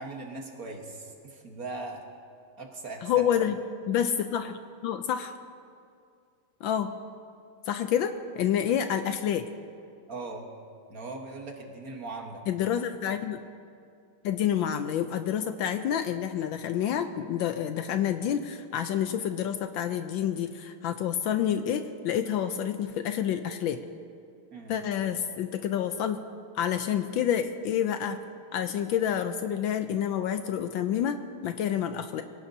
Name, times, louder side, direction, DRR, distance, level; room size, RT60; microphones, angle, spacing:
voice 1, 0.0-2.0 2.6-3.3 10.1-10.5 10.9-12.4 24.5-24.8, right 3 dB, 45° right, 1 dB, 1.6 m, -39 dB
voice 2, 3.0-3.5 3.9-5.4 6.6-7.0 7.7-9.5 12.5-13.4 14.2-23.8 24.7-26.2 26.5-28.2 28.5-32.2, left 9 dB, 75° left, 8 dB, 1.2 m, -28 dB
24.0 x 17.0 x 2.7 m, 2.4 s
omnidirectional pair, 2.4 m